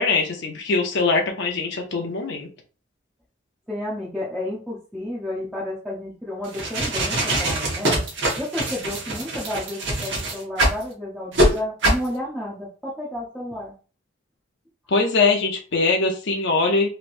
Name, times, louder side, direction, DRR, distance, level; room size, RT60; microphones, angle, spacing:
voice 1, 0.0-2.5 14.9-16.9, left 3 dB, 60° left, 2 dB, 0.7 m, -22 dB
voice 2, 3.7-13.7, left 1 dB, 5° right, -8 dB, 0.8 m, -31 dB
sound 1, 6.4-10.8 11.3-11.5 11.8-12.1, right 1 dB, 60° right, 1.1 m, -23 dB
3.2 x 2.9 x 2.6 m, 0.37 s
head